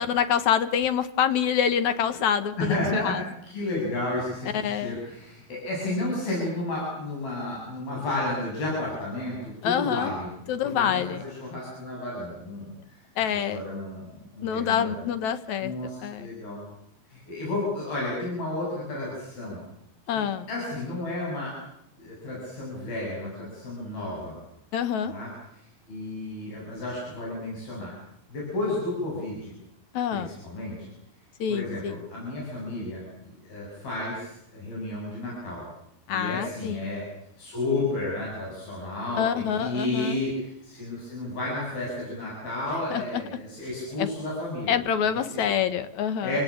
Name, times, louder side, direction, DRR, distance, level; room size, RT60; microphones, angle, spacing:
voice 1, 0.0-3.2 4.5-5.0 9.6-10.1 10.5-11.2 13.2-13.6 14.4-15.7 16.0-16.3 20.1-20.5 24.7-25.1 29.9-30.3 31.4-32.0 36.1-36.9 39.2-40.2 42.9-43.2 44.0-44.1 44.7-46.4, left 8 dB, 65° left, 12 dB, 2.2 m, -26 dB
voice 2, 2.6-3.2 3.5-10.3 10.6-13.0 13.5-14.9 15.6-16.6 17.1-19.6 20.2-21.5 22.0-24.4 25.1-25.3 25.5-27.9 28.3-29.5 30.1-30.8 31.5-35.6 36.1-37.0 37.4-45.4 46.2-46.4, left 2 dB, 85° left, -4 dB, 9.6 m, -32 dB
29.5 x 17.5 x 8.7 m, 0.79 s
omnidirectional pair, 4.1 m